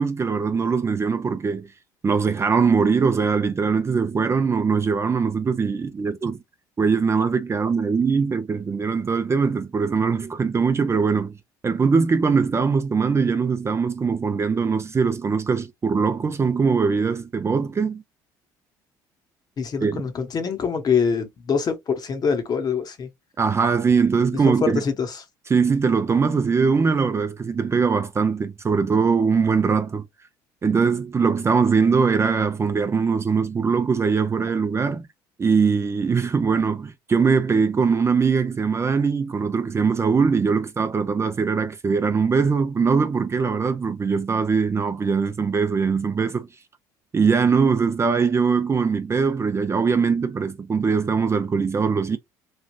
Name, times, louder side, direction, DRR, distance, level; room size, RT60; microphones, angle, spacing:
voice 1, 0.0-1.7 2.0-6.4 6.8-11.4 11.6-18.0 19.8-20.0 23.4-24.8 25.5-30.1 30.6-35.1 35.4-46.5 47.1-52.2, right 5 dB, 30° right, 0.5 m, -21 dB
voice 2, 19.6-23.1 24.3-25.2, left 6 dB, 45° left, 1.0 m, -24 dB
3.2 x 2.4 x 2.4 m
supercardioid pair, 75°, 10 cm